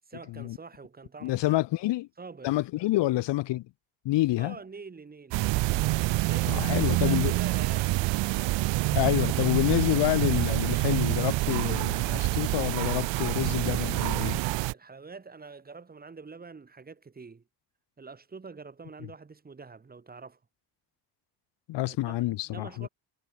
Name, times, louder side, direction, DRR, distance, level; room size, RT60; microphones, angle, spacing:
voice 1, 0.1-1.6 2.2-2.6 4.4-5.4 6.1-8.0 14.7-17.4 18.0-20.4 21.8-22.9, right 4 dB, 20° right, 4.4 m, -46 dB
voice 2, 1.2-2.1 2.4-3.7 4.0-4.6 6.5-7.3 8.9-14.4 21.7-22.9, left 17 dB, 75° left, 1.5 m, -28 dB
sound 1, 5.3-14.7, right 19 dB, 85° right, 1.2 m, -27 dB
cardioid pair, 150°, 43 cm